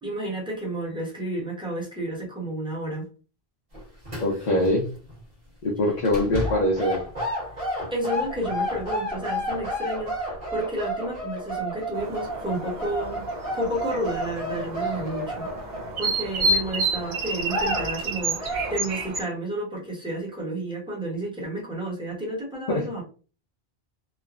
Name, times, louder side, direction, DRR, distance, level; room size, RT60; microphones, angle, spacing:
voice 1, 0.0-3.1 7.9-13.3 13.5-15.5 16.0-23.0, right 1 dB, 5° right, -3 dB, 0.8 m, -31 dB
sound 1, 3.7-4.7 4.9-5.2 6.0-16.5 17.0-17.1 17.4-18.0 18.4-18.8, equal, 30° right, 1.4 m, -31 dB
voice 2, 4.2-4.9 5.6-7.0 22.7-22.8, left 1 dB, 50° left, -2 dB, 0.6 m, -23 dB
sound 2, 11.9-19.2, right 2 dB, 50° right, 0.6 m, -30 dB
3.0 x 2.1 x 2.4 m, 0.36 s
omnidirectional pair, 1.1 m